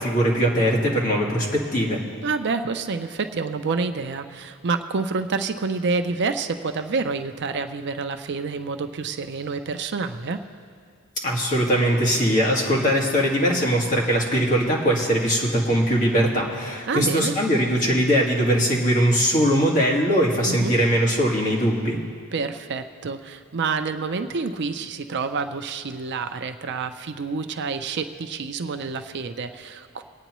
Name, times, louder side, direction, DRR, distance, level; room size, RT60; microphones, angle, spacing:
voice 1, 0.0-2.0 11.2-22.0, equal, 40° left, -2 dB, 1.8 m, -21 dB
voice 2, 2.2-10.4 16.9-17.3 20.5-20.8 22.3-30.0, right 4 dB, 55° right, 8 dB, 0.5 m, -28 dB
23.5 x 9.0 x 3.1 m, 2.1 s
head